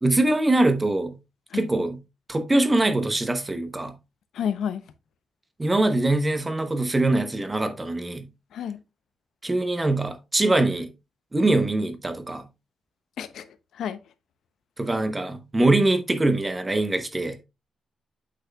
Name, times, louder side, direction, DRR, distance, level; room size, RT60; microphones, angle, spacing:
voice 1, 0.0-1.2 1.5-2.0 2.3-3.9 5.6-8.3 9.4-10.9 11.3-12.5 14.8-17.4, right 2 dB, 15° right, 0.7 m, -23 dB
voice 2, 4.3-4.8 8.5-8.8 13.2-13.5 13.7-14.0, left 8 dB, 90° left, 0.6 m, -30 dB
8.4 x 6.1 x 2.2 m
wide cardioid pair, 175°, 0 cm